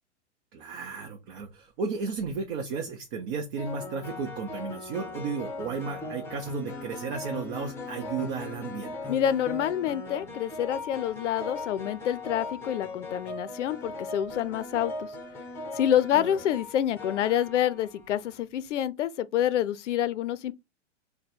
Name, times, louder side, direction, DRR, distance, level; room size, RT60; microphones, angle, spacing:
voice 1, 0.5-9.1 16.1-16.3, right 5 dB, 45° right, 0.9 m, -34 dB
sound 1, 2.0-2.3 3.6-18.4, left 3 dB, 5° left, 0.7 m, -39 dB
voice 2, 9.1-15.1 15.7-20.5, left 10 dB, 85° left, 0.5 m, -27 dB
3.4 x 2.2 x 4.4 m
hypercardioid pair, 135°, 35 cm